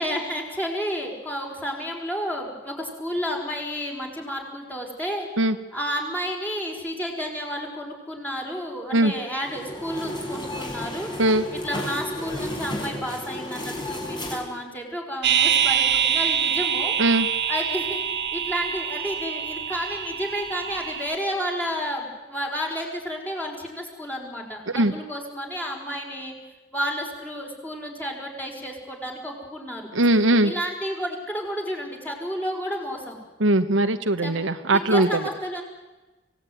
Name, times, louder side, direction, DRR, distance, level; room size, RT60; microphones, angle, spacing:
voice 1, 0.0-5.3 5.7-11.1 11.5-16.9 17.5-18.0 18.3-26.3 26.7-29.9 30.4-33.2 34.2-34.3 34.6-35.6, equal, 10° left, 0 dB, 5.2 m, -31 dB
sound 1, 9.4-14.4, left 1 dB, 25° left, 5.7 m, -32 dB
sound 2, 15.2-21.1, right 8 dB, 60° right, 1.4 m, -25 dB
voice 2, 29.9-30.5 33.4-35.2, right 1 dB, 80° right, 9 dB, 1.3 m, -20 dB
26.0 x 17.5 x 9.5 m, 1.2 s
head